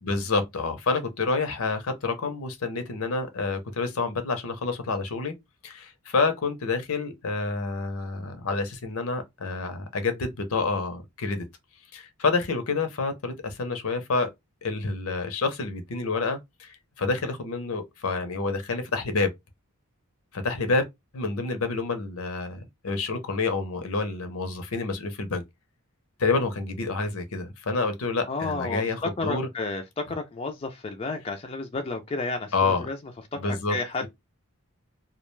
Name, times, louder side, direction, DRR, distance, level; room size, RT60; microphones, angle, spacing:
voice 1, 0.0-5.3 5.6-11.5 11.9-14.3 14.6-19.3 20.3-20.8 21.1-25.4 26.2-29.5 32.5-32.9 33.4-33.8 34.0-34.1, left 3 dB, 70° left, 0.6 m, -28 dB
voice 2, 28.3-33.0 33.7-34.0, left 3 dB, 25° left, 0.3 m, -31 dB
2.3 x 2.1 x 3.1 m
head